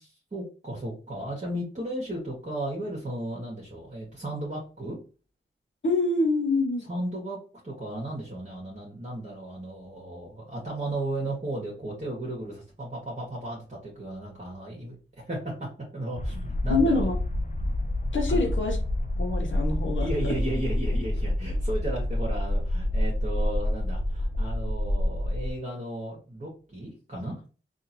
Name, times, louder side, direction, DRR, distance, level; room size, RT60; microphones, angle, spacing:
voice 1, 0.0-5.0 6.8-7.4 7.6-15.7 15.9-17.1 18.3-18.5 20.0-27.4, right 1 dB, 35° right, 1.5 m, -35 dB
voice 2, 5.8-6.9 16.7-17.2 18.1-18.8 19.2-20.4, left 3 dB, 65° left, 0.8 m, -25 dB
sound 1, 16.2-25.5, left 1 dB, 35° left, 0.6 m, -28 dB
3.7 x 2.6 x 2.8 m
cardioid pair, 55°, 21 cm